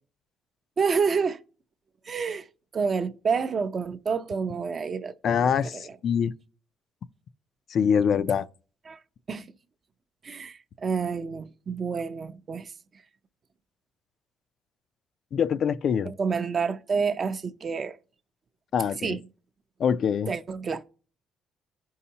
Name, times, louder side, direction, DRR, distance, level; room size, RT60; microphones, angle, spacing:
voice 1, 0.8-1.4 2.1-2.5 2.7-6.0 8.9-9.0 9.3-9.5 10.2-12.7 16.0-18.0 19.0-19.2 20.3-20.8, right 5 dB, 35° right, 0.5 m, -29 dB
voice 2, 5.2-6.3 7.7-8.5 15.3-16.1 18.7-19.2 19.8-20.3, left 7 dB, 50° left, 0.3 m, -24 dB
15.5 x 5.5 x 2.8 m
cardioid pair, 145°, 0 cm